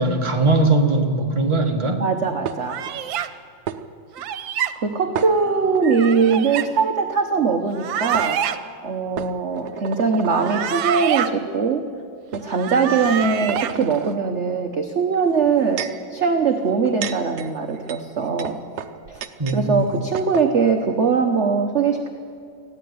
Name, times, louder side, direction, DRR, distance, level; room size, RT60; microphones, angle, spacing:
voice 1, 0.0-2.0 19.4-19.9, right 2 dB, 15° right, 2 dB, 1.5 m, -20 dB
voice 2, 2.0-2.8 4.8-8.4 8.8-11.8 12.3-15.8 16.1-18.6 19.1-19.2 19.5-22.1, right 5 dB, 45° right, 4 dB, 1.2 m, -21 dB
sound 1, 2.5-2.9 3.7-3.8 5.1-5.8 6.2-6.4 7.7-7.8 8.1-8.3 9.2-10.8 11.5-11.7 12.3-12.5 13.0-14.2 15.3-16.1 16.7-19.6 19.9-20.0 20.1-20.5, right 9 dB, 60° right, 1.3 m, -32 dB
sound 2, 2.7-3.3 4.1-4.7 5.8-6.7 7.7-8.6 10.2-11.3 12.4-13.7, right 10 dB, 85° right, 1.6 m, -26 dB
19.0 x 14.5 x 9.5 m, 2.2 s
omnidirectional pair, 2.1 m